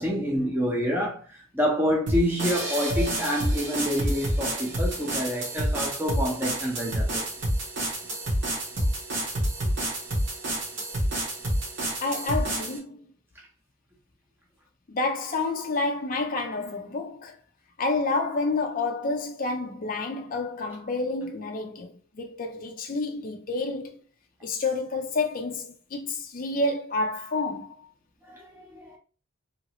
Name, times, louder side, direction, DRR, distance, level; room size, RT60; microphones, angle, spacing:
voice 1, 0.0-7.3 28.2-29.0, equal, 10° right, 0.7 m, -28 dB
sound 1, 2.1-12.8, right 1 dB, 50° right, 1.1 m, -28 dB
voice 2, 12.0-13.0 14.9-17.4 17.8-24.0 24.4-27.8, left 3 dB, 40° left, 0.4 m, -29 dB
2.8 x 2.6 x 2.9 m
head